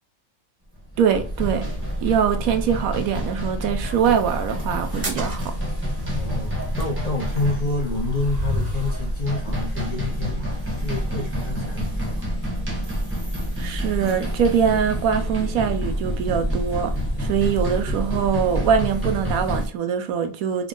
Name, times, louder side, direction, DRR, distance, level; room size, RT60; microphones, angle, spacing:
sound 1, 0.8-19.7, equal, 10° right, 0.9 m, -28 dB
voice 1, 1.0-1.7 2.0-5.5 13.6-16.9 17.2-20.7, right 7 dB, 85° right, 1.1 m, -23 dB
sound 2, 4.9-9.1, equal, 35° right, 0.9 m, -31 dB
voice 2, 6.1-10.5 10.8-12.2, left 3 dB, 40° left, 0.6 m, -28 dB
3.5 x 2.2 x 3.7 m
omnidirectional pair, 1.4 m